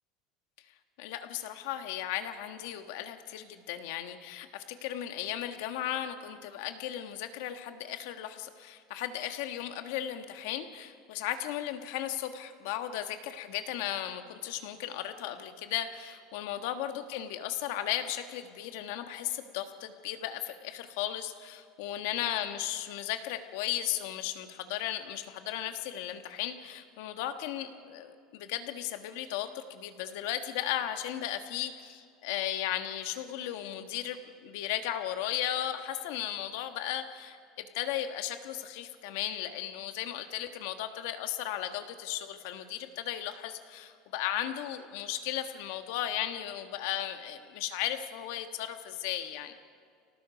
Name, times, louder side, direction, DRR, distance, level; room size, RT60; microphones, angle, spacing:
voice 1, 1.0-49.5, left 11 dB, 65° left, 8 dB, 1.3 m, -36 dB
29.0 x 18.0 x 5.2 m, 2.2 s
cardioid pair, 175°, 0 cm